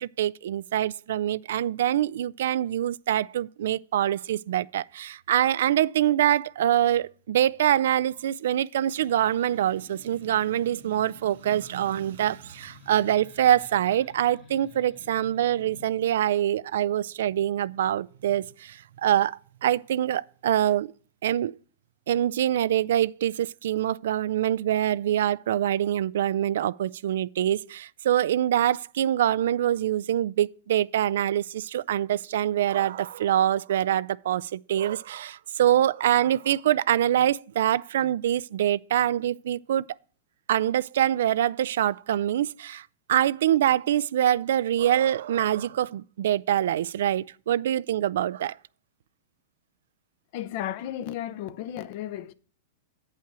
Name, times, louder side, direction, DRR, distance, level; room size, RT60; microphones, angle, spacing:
voice 1, 0.0-20.9 21.2-21.5 22.1-39.8 40.5-48.6, right 11 dB, 75° right, 0.3 m, -25 dB
sound 1, 9.0-15.9, left 3 dB, 30° left, 1.7 m, -51 dB
voice 2, 50.3-52.3, left 11 dB, 50° left, 0.7 m, -34 dB
8.8 x 5.7 x 6.0 m
hypercardioid pair, 140°, 0 cm